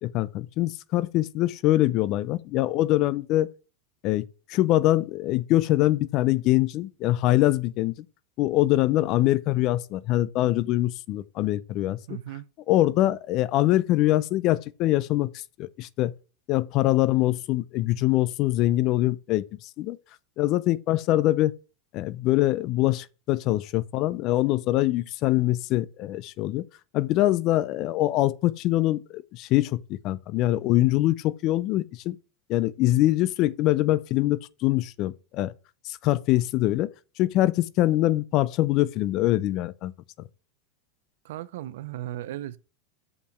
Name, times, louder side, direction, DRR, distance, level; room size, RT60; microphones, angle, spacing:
voice 1, 0.0-3.5 4.0-7.9 8.4-12.0 12.7-16.1 16.5-20.0 20.4-21.5 21.9-26.6 26.9-32.2 32.5-35.5 35.8-36.9 37.2-39.9, left 15 dB, 50° left, 0.5 m, -24 dB
voice 2, 12.1-12.5 41.2-42.6, right 13 dB, 70° right, 0.6 m, -36 dB
6.7 x 5.6 x 5.7 m
hypercardioid pair, 100°, 0 cm